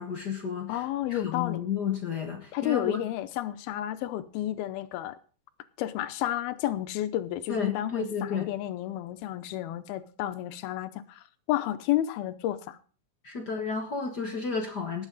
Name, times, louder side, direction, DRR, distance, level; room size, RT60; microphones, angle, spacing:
voice 1, 0.0-3.0 7.5-8.5 13.2-15.0, left 6 dB, 55° left, 1.1 m, -32 dB
voice 2, 0.7-1.6 2.5-5.2 5.8-12.8, left 13 dB, 90° left, 2.8 m, -31 dB
19.0 x 8.6 x 4.0 m
omnidirectional pair, 4.3 m